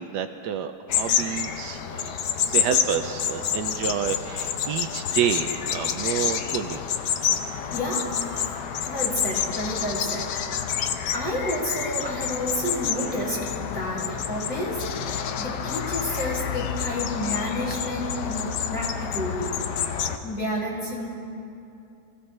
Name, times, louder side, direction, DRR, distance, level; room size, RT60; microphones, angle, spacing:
voice 1, 0.0-2.2 2.5-6.8, right 8 dB, 75° right, 7 dB, 1.2 m, -29 dB
sound 1, 0.9-20.2, left 8 dB, 75° left, 1.3 m, -28 dB
voice 2, 7.7-8.1 8.8-10.3 11.1-19.6 20.2-21.2, equal, 30° left, -5 dB, 3.3 m, -30 dB
25.5 x 16.0 x 3.3 m, 2.7 s
omnidirectional pair, 1.9 m